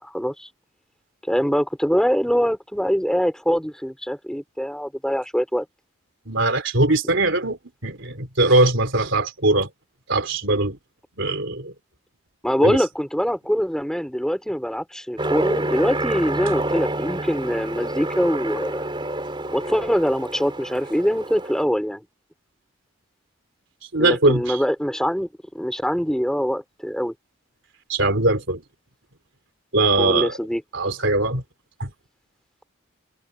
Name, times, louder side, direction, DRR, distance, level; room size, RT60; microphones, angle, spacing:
voice 1, 0.0-0.5 1.3-5.6 12.4-18.8 19.5-22.0 24.0-25.3 25.5-27.1 30.0-30.6, equal, 5° left, 4.5 m, -23 dB
voice 2, 6.3-9.7 10.1-10.8 11.2-11.7 12.6-12.8 23.9-24.6 27.9-28.6 29.7-30.3 30.7-31.4 31.8-31.9, right 2 dB, 60° right, 4.0 m, -21 dB
Aircraft, 15.2-21.6, right 1 dB, 25° right, 4.2 m, -28 dB
head